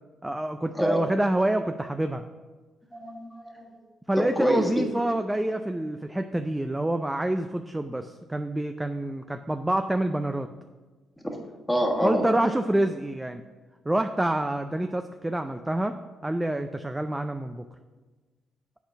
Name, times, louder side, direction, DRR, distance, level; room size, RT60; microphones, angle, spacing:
voice 1, 0.2-2.3 4.1-10.5 12.0-13.4 13.9-16.0 16.2-17.7, right 1 dB, 10° right, 7 dB, 0.4 m, -27 dB
voice 2, 2.9-3.8 4.4-4.7 11.2-11.4 11.7-12.2, equal, 5° left, 1 dB, 1.5 m, -26 dB
8.1 x 4.3 x 5.6 m, 1.3 s
cardioid pair, 90°, 0 cm